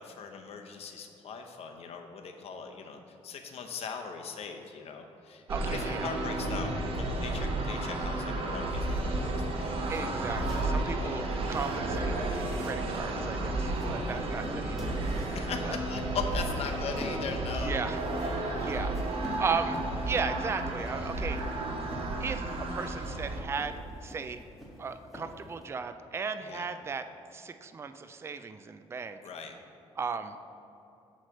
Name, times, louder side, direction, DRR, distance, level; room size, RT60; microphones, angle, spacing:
voice 1, 0.0-9.6 15.3-17.9 18.2-18.5 26.5-26.7 29.2-29.5, left 5 dB, 65° left, 4 dB, 0.7 m, -40 dB
voice 2, 5.5-6.1 9.9-12.3 12.6-14.9 15.6-15.7 17.6-18.0 18.6-19.0 19.4-21.4 22.2-24.4 24.8-27.1 27.3-29.2 30.0-30.4, right 5 dB, 25° right, 9 dB, 0.3 m, -36 dB
sound 1, 5.5-23.4, right 2 dB, 55° right, 0.9 m, -32 dB
sound 2, 8.6-25.7, left 1 dB, ahead, 1.5 m, -47 dB
8.3 x 3.2 x 6.5 m, 2.7 s
cardioid pair, 120°, 11 cm